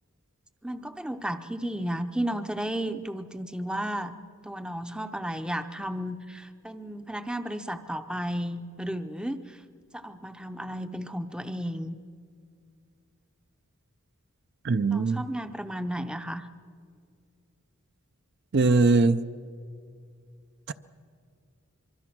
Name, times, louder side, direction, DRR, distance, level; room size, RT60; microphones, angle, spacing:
voice 1, 0.6-4.1 4.4-9.6 9.9-12.0 14.8-16.5, equal, 5° right, 10 dB, 0.6 m, -33 dB
voice 2, 14.6-15.2 18.5-19.2 20.7-20.8, right 3 dB, 50° right, 12 dB, 0.5 m, -21 dB
24.5 x 24.0 x 6.1 m, 2.3 s
head